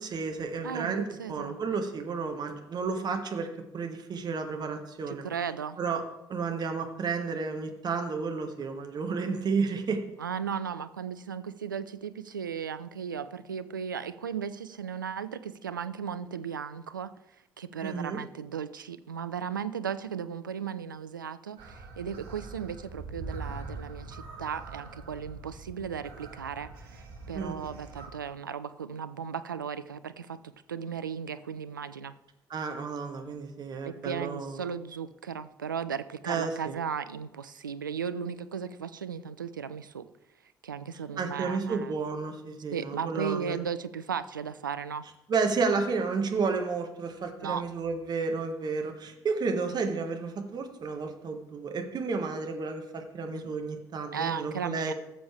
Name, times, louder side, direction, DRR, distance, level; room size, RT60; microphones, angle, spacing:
voice 1, 0.0-3.5 3.7-5.2 5.8-6.0 6.3-10.0 17.8-18.2 27.3-27.6 32.5-34.6 36.2-36.5 41.2-43.6 45.3-54.9, right 4 dB, 40° right, 4 dB, 1.5 m, -31 dB
voice 2, 0.6-1.6 5.1-5.8 10.2-17.1 17.6-32.1 33.8-40.1 40.6-41.9 42.7-45.1 47.4-47.6 49.7-49.8 53.3-53.4 54.1-54.9, right 7 dB, 80° right, 12 dB, 0.4 m, -36 dB
sound 1, 21.6-28.1, right 3 dB, 60° right, 1.8 m, -43 dB
14.5 x 6.9 x 3.3 m, 0.93 s
figure-of-eight pair, 45°, 10 cm